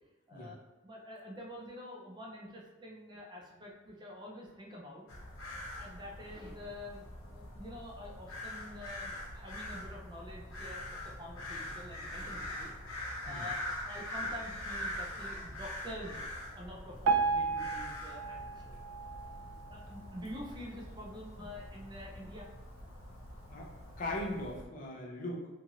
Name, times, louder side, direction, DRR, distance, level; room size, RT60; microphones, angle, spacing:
voice 1, 0.8-5.0 5.8-10.8 11.2-18.8 19.7-22.5, left 1 dB, 20° right, -2 dB, 0.4 m, -47 dB
sound 1, 5.1-24.7, left 1 dB, 85° left, 0.6 m, -43 dB
Piano, 17.0-20.2 20.7-20.8 21.1-21.2 21.9-22.0 22.6-22.7, right 5 dB, 90° right, 0.3 m, -33 dB
voice 2, 24.0-25.5, left 1 dB, 40° left, -1 dB, 0.5 m, -39 dB
2.9 x 2.4 x 2.8 m, 1.1 s
head